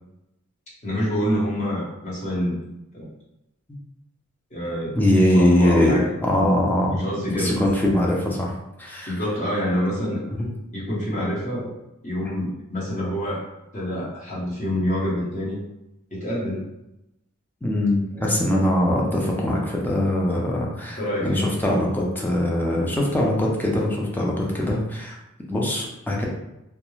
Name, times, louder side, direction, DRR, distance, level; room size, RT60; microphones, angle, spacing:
voice 1, 0.8-2.6 2.9-3.1 4.5-6.1 6.9-7.6 9.1-10.2 10.7-11.7 12.0-13.4 13.7-15.6 16.1-16.6 18.1-18.6 21.0-21.5, equal, 35° left, -6 dB, 0.8 m, -27 dB
voice 2, 5.0-7.0 7.3-8.5 8.8-9.1 10.3-10.5 17.6-25.2 25.5-26.3, left 1 dB, 10° left, -2 dB, 0.4 m, -22 dB
2.3 x 2.1 x 3.0 m, 0.90 s
head